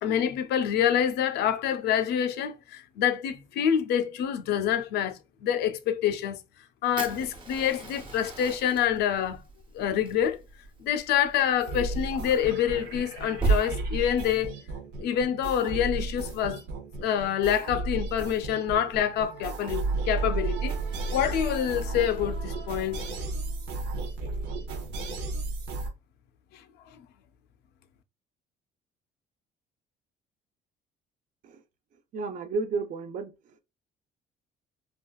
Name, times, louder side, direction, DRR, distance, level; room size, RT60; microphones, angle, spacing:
voice 1, 0.0-6.4 6.8-9.4 9.7-10.4 10.8-14.6 15.0-16.6 17.0-20.8 21.1-23.0 26.5-26.6, left 9 dB, 75° left, 0.5 m, -27 dB
Fire, 7.0-13.6, right 4 dB, 30° right, 0.8 m, -34 dB
sound 1, 11.6-25.9, right 3 dB, 85° right, 0.7 m, -34 dB
voice 2, 32.1-33.3, right 4 dB, 50° right, 0.5 m, -31 dB
3.4 x 2.3 x 2.2 m
cardioid pair, 110°, 17 cm